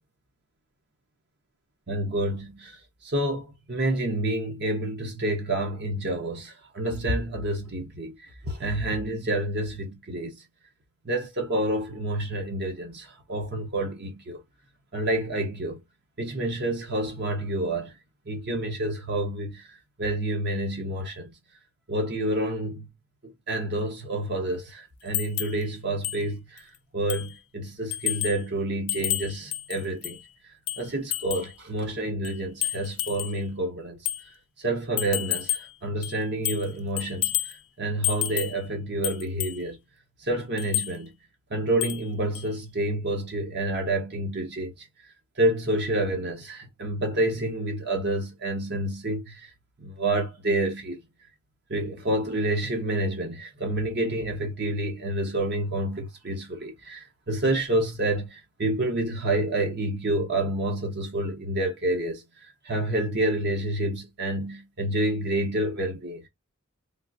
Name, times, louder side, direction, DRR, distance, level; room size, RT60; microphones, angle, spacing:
voice 1, 1.9-2.7 3.0-8.1 8.5-10.4 11.0-14.4 14.9-15.8 16.2-17.9 18.3-19.6 20.0-21.3 21.9-22.9 23.5-26.6 26.9-30.2 30.8-34.0 34.6-37.3 37.8-39.8 40.3-41.1 41.5-44.7 45.4-49.5 49.8-51.0 51.7-62.2 62.6-66.2, right 1 dB, 50° right, 0.9 m, -28 dB
sound 1, 25.1-25.6 26.0-26.2 26.6-26.7 27.1-27.4 27.9-28.4 28.9-30.2 30.7-31.5 32.2-33.4 34.1-34.2 35.0-35.7 36.0-36.7 37.0-37.6 38.0-38.6 39.0-39.6 40.6-40.9 41.8-42.1 42.3-42.5, left 15 dB, 85° left, 0.5 m, -30 dB
3.5 x 2.5 x 2.5 m
head